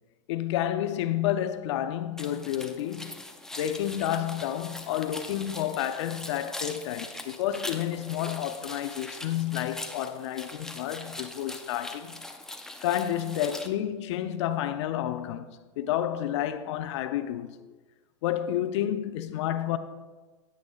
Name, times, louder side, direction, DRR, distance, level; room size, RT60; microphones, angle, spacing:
voice 1, 0.3-3.2 3.6-12.1 12.8-15.4 15.8-17.5 18.2-19.8, left 11 dB, 60° left, 0.6 m, -30 dB
sound 1, 2.2-13.7, left 2 dB, 5° left, 0.4 m, -41 dB
9.8 x 9.3 x 2.3 m
supercardioid pair, 135°, 17 cm